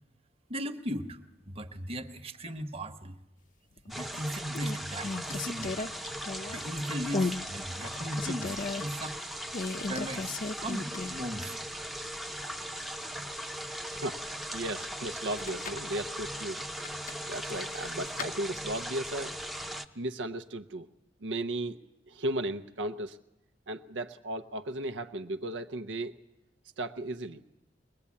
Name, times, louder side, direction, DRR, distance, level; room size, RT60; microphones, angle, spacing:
voice 1, 0.5-1.2 1.5-3.2 3.9-5.8 6.5-9.2 9.9-11.6, equal, 35° right, 7 dB, 1.2 m, -37 dB
sound 1, 3.8-4.2 4.5-6.7 7.1-7.4 7.8-8.8 9.5-11.3 11.6-11.7 15.2-15.9 16.8-18.3, left 3 dB, 45° left, 0.8 m, -35 dB
sound 2, 3.9-19.9, equal, ahead, 0.7 m, -39 dB
voice 2, 13.9-16.6 17.3-19.4 20.0-20.9 21.2-21.8 22.1-23.2 23.7-26.2 26.8-27.4, right 1 dB, 80° right, 7 dB, 0.8 m, -35 dB
22.5 x 20.0 x 8.5 m, 0.93 s
head